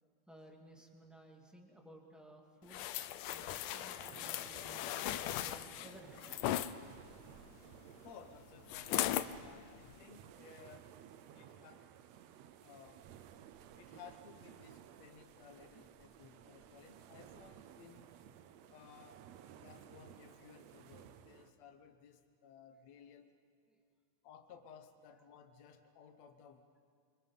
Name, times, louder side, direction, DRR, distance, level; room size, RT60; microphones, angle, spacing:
voice 1, 0.0-2.8 3.3-6.3 11.8-11.9 23.7-23.8, right 1 dB, ahead, 0 dB, 1.8 m, -58 dB
sound 1, 2.7-6.7 8.7-9.3 9.9-10.0, left 13 dB, 90° left, 2.3 m, -38 dB
sound 2, 3.3-21.5, right 9 dB, 75° right, 1.8 m, -57 dB
voice 2, 8.0-10.9 11.4-11.7 12.6-13.0 13.8-18.2 18.7-19.3 19.6-23.3 24.2-26.8, left 7 dB, 65° left, 5 dB, 2.2 m, -58 dB
27.0 x 25.5 x 5.5 m, 2.2 s
omnidirectional pair, 3.5 m